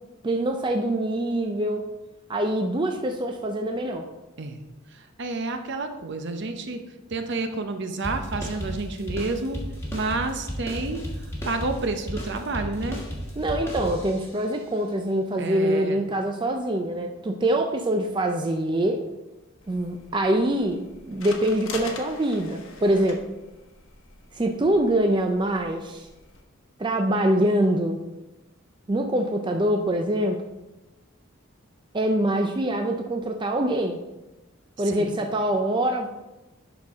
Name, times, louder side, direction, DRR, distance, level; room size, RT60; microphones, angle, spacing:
voice 1, 0.2-1.9 2.3-4.1 13.4-19.0 19.7-23.2 24.3-26.1 26.8-28.0 28.9-30.4 31.9-34.0 34.8-36.1, right 1 dB, 20° right, 3 dB, 0.4 m, -24 dB
voice 2, 4.9-6.8 7.1-9.6 9.9-13.0 15.4-16.0 34.8-35.2, right 3 dB, 55° right, 6 dB, 0.7 m, -30 dB
sound 1, 8.0-14.4, equal, 10° left, 1.3 m, -34 dB
sound 2, 19.6-26.4, left 4 dB, 65° left, 1.1 m, -43 dB
11.0 x 4.3 x 3.6 m, 1.0 s
head